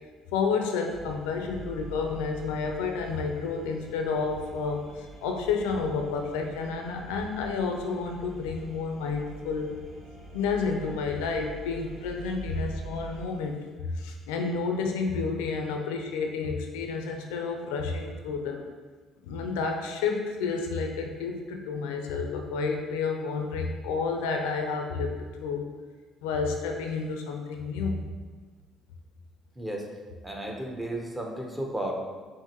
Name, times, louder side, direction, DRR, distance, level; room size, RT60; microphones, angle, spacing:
voice 1, 0.3-9.7 10.3-13.6 13.8-18.6 19.2-25.1 25.4-25.7 26.2-28.1, left 4 dB, 90° left, 3 dB, 0.4 m, -30 dB
sound 1, 0.9-13.2, right 3 dB, 75° right, 0.9 m, -45 dB
voice 2, 29.6-29.9 30.2-31.9, right 1 dB, 10° right, 1 dB, 0.8 m, -33 dB
5.8 x 2.5 x 2.9 m, 1.4 s
supercardioid pair, 70°, 0 cm